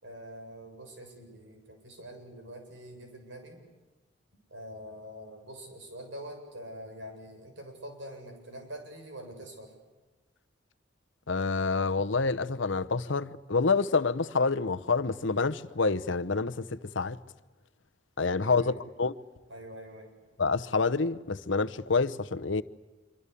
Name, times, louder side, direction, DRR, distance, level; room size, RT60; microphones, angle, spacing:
voice 1, 0.0-3.6 4.5-9.7 18.6-18.8 19.5-20.1, equal, 70° right, 7.7 m, -45 dB
voice 2, 11.3-17.2 18.2-19.1 20.4-22.6, left 4 dB, 70° left, 1.0 m, -27 dB
26.5 x 25.0 x 8.5 m
head